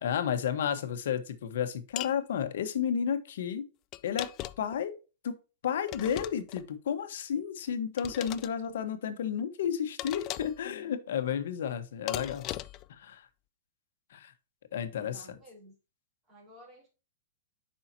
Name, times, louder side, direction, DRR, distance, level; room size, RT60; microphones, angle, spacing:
voice 1, 0.0-3.6 4.0-4.3 4.6-4.9 5.2-5.3 5.6-12.5 12.9-13.3 14.1-14.3 14.7-15.2, left 8 dB, 70° left, 1.1 m, -32 dB
sound 1, 2.0-2.2 3.9-4.8 5.9-6.7 8.0-8.5 10.0-10.6 12.1-12.9, left 15 dB, 30° left, 0.3 m, -38 dB
voice 2, 14.7-15.7 16.3-16.9, right 1 dB, 15° right, 4.0 m, -54 dB
7.1 x 5.6 x 2.7 m
supercardioid pair, 160°, 0 cm